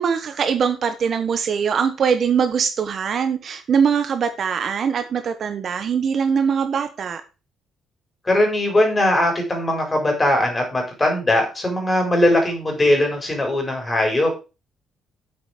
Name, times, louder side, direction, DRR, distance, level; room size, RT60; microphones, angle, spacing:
voice 1, 0.0-7.2, right 6 dB, 40° right, 8 dB, 1.1 m, -22 dB
voice 2, 8.2-14.4, left 1 dB, 15° left, 2 dB, 4.9 m, -20 dB
9.0 x 7.8 x 5.1 m, 0.30 s
cardioid pair, 150°, 0 cm